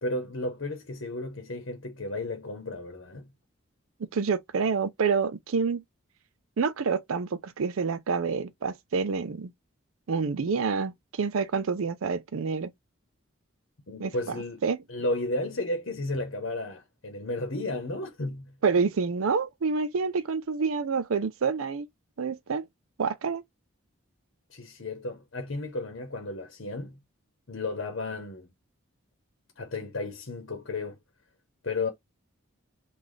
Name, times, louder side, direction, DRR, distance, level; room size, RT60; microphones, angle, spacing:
voice 1, 0.0-3.3 13.9-14.6 14.9-18.6 24.5-27.0 27.5-28.5 29.6-31.0 31.6-31.9, left 2 dB, 65° left, 0.9 m, -33 dB
voice 2, 4.1-5.8 6.6-9.5 10.1-12.7 14.0-14.3 14.6-14.8 18.6-21.9 22.2-22.6 23.0-23.4, right 5 dB, 75° right, 0.5 m, -27 dB
3.9 x 2.4 x 3.2 m
head